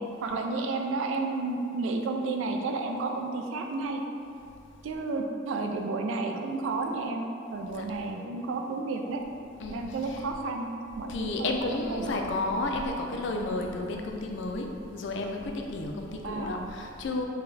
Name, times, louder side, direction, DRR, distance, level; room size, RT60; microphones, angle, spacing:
voice 1, 0.2-4.0 4.8-7.2 7.5-9.2 9.7-10.7 11.0-12.3 16.2-16.7, right 3 dB, 90° right, 3 dB, 0.3 m, -31 dB
voice 2, 9.6-10.2 11.1-17.2, left 2 dB, 65° left, 3 dB, 0.4 m, -32 dB
4.0 x 2.2 x 3.9 m, 2.6 s
head